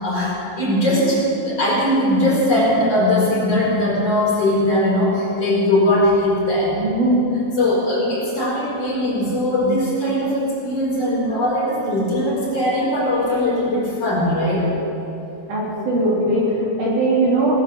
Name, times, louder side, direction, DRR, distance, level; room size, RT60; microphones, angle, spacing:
voice 1, 0.0-6.7 7.6-14.9, left 1 dB, 40° left, -6 dB, 5.9 m, -20 dB
voice 2, 6.7-7.2 15.5-17.5, right 1 dB, 55° right, -6 dB, 4.4 m, -19 dB
19.5 x 10.5 x 7.1 m, 2.7 s
omnidirectional pair, 4.6 m